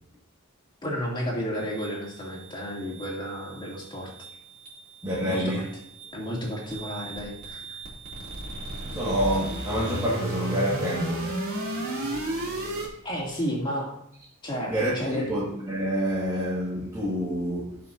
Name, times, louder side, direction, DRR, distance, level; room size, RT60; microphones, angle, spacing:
voice 1, 0.8-4.1 5.2-5.6 6.1-7.8 13.0-13.9 14.4-15.2, equal, 20° left, 3.0 m, -32 dB
sound 1, 1.5-12.9, right 1 dB, 45° right, 3.3 m, -35 dB
voice 2, 5.0-5.6 8.9-11.3 11.7-12.5 14.7-17.8, equal, 15° right, 2.1 m, -28 dB
17.5 x 6.0 x 2.9 m
head